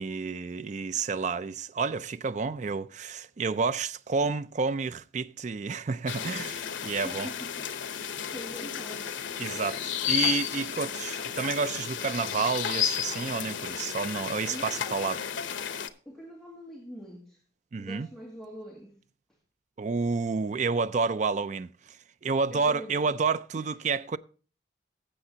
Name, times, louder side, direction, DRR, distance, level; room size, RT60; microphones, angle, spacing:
voice 1, 0.0-7.3 9.4-15.2 17.7-18.1 19.8-21.7 22.2-24.2, right 4 dB, 40° right, 0.4 m, -30 dB
sound 1, 6.1-15.9, left 9 dB, 85° left, 0.8 m, -33 dB
voice 2, 7.0-7.7 7.9-9.2 14.5-15.3 16.1-17.4 17.8-19.0 22.5-23.0 23.6-23.8, equal, ahead, 2.0 m, -44 dB
15.5 x 7.6 x 2.8 m
head